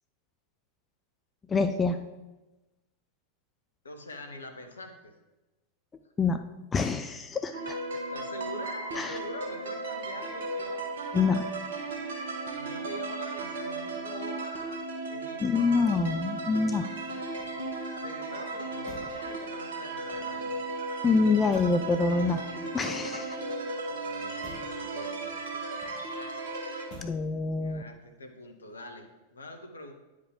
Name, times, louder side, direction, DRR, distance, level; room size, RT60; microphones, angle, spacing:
voice 1, 1.5-2.0 6.2-6.4 6.7-7.8 9.0-9.2 11.1-11.4 15.4-16.9 21.0-22.4 22.7-23.4 27.0-27.8, left 4 dB, 20° left, 8 dB, 0.4 m, -26 dB
voice 2, 3.8-5.1 8.1-10.9 12.5-14.8 15.1-16.0 17.9-20.6 23.8-26.6 27.6-29.1 29.3-29.9, left 1 dB, 75° left, 5 dB, 0.9 m, -44 dB
sound 1, 7.5-26.9, right 3 dB, 65° right, 1.3 m, -36 dB
Motor vehicle (road), 17.2-18.0 18.8-19.3 19.9-20.6 21.5-22.0 22.7-23.5 24.4-24.8 25.7-26.3 26.9-27.3 27.6-28.1, left 2 dB, 50° left, 2.4 m, -50 dB
9.7 x 4.9 x 3.7 m, 1.1 s
figure-of-eight pair, 90°, 0 cm